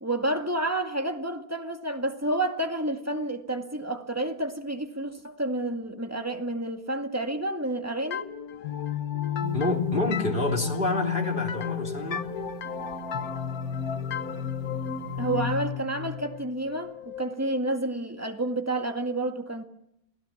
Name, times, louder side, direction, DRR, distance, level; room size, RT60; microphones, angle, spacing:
voice 1, 0.0-8.3 15.2-19.6, right 1 dB, 10° right, 1.9 m, -30 dB
sound 1, 8.1-17.6, left 9 dB, 65° left, 1.6 m, -33 dB
sound 2, 9.4-15.6, right 19 dB, 80° right, 1.6 m, -41 dB
voice 2, 9.5-12.3, left 2 dB, 30° left, 3.5 m, -28 dB
29.5 x 18.0 x 7.2 m
omnidirectional pair, 1.7 m